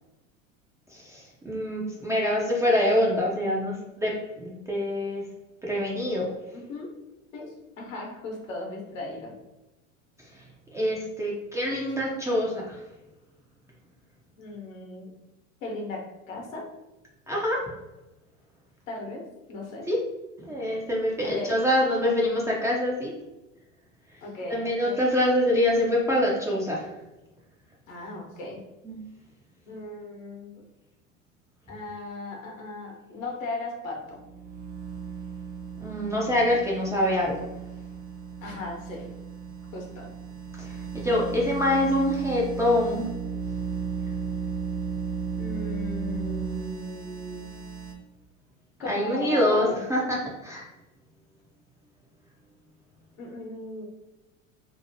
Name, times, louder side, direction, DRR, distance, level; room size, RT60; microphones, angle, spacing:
voice 1, 0.9-5.2 5.6-6.4 10.7-12.8 17.3-17.7 19.9-20.0 20.5-23.1 24.5-26.9 28.8-29.0 35.8-37.4 40.6-43.1 48.8-50.6, left 1 dB, 10° right, -4 dB, 0.3 m, -25 dB
voice 2, 6.5-6.9 7.3-9.3 14.4-15.1 15.6-16.0 16.3-16.6 18.9-19.2 19.5-19.8 21.2-21.5 24.2-25.1 27.9-28.6 29.7-30.6 31.7-34.2 38.4-39.1 39.7-40.1 45.4-47.5 48.8-49.8 53.2-53.8, left 2 dB, 80° left, 0 dB, 0.9 m, -37 dB
sound 1, 34.1-47.9, right 6 dB, 55° right, 0.9 m, -35 dB
2.7 x 2.1 x 2.6 m, 1.0 s
hypercardioid pair, 85°, 39 cm